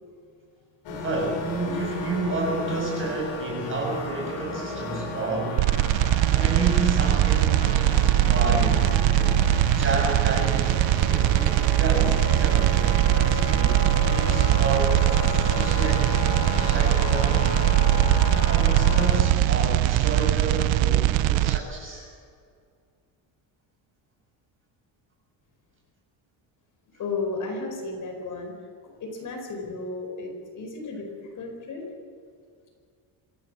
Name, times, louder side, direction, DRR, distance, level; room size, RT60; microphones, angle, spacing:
sound 1, 0.8-19.2, left 2 dB, 80° left, 7.6 m, -33 dB
voice 1, 0.9-5.7 6.3-7.7 8.2-9.0 9.7-10.8 11.1-13.8 14.1-17.6 18.5-22.1, right 2 dB, 30° right, -1 dB, 7.4 m, -30 dB
sound 2, 5.6-21.6, right 13 dB, 90° right, 0.9 m, -21 dB
voice 2, 26.9-28.5 28.8-31.1 31.3-31.8, left 3 dB, 45° left, 2 dB, 4.6 m, -33 dB
26.0 x 15.5 x 7.6 m, 2.2 s
cardioid pair, 170°, 45 cm